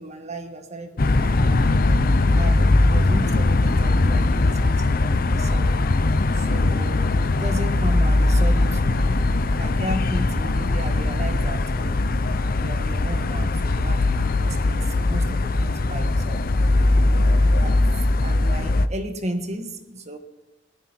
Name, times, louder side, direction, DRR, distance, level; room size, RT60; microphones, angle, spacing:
voice 1, 0.0-1.7 2.4-5.7 6.3-9.3 9.6-12.0 12.6-16.4 17.0-17.3 17.6-17.8 18.2-20.2, right 1 dB, 35° right, 6 dB, 1.5 m, -34 dB
sound 1, 1.0-18.9, left 2 dB, 50° left, 0.7 m, -20 dB
19.5 x 13.0 x 4.5 m, 0.96 s
head